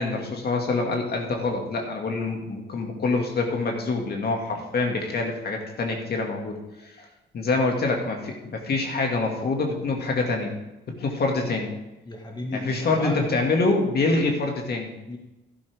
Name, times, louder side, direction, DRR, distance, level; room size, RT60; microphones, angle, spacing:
voice 1, 0.0-6.6 6.8-7.1 7.3-10.5 11.0-11.7 12.5-14.9, left 3 dB, 55° left, 2 dB, 2.2 m, -25 dB
voice 2, 12.0-13.3 15.1-15.2, left 1 dB, 20° left, 1 dB, 1.8 m, -33 dB
12.0 x 11.5 x 3.6 m, 0.98 s
cardioid pair, 90°, 20 cm